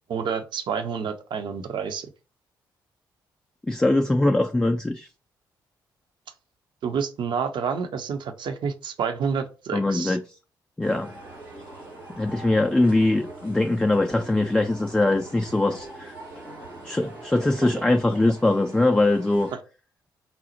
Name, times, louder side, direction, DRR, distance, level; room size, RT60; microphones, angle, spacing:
voice 1, 0.1-2.1 6.8-10.2 17.7-17.8, right 6 dB, 45° right, 0.5 m, -29 dB
voice 2, 3.7-5.1 9.7-10.2 10.8-11.1 12.2-16.1 16.8-19.5, left 2 dB, 10° left, 0.3 m, -22 dB
sound 1, 10.8-19.5, right 2 dB, 85° right, 1.3 m, -43 dB
4.1 x 2.0 x 2.8 m
figure-of-eight pair, 40°, 11 cm